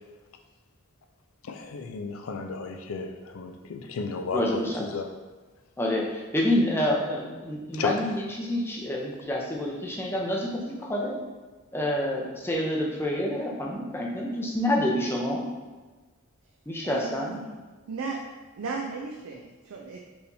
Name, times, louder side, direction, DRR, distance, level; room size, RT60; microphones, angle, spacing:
voice 1, 1.4-5.1 7.7-8.0, left 4 dB, 85° left, 5 dB, 0.4 m, -33 dB
voice 2, 4.3-4.9 5.8-11.2 11.7-15.5 16.7-17.4, left 1 dB, 10° left, -2 dB, 0.6 m, -28 dB
voice 3, 16.8-17.4 17.9-18.2 18.6-20.0, right 4 dB, 85° right, 0 dB, 0.4 m, -35 dB
4.6 x 3.4 x 2.7 m, 1.3 s
head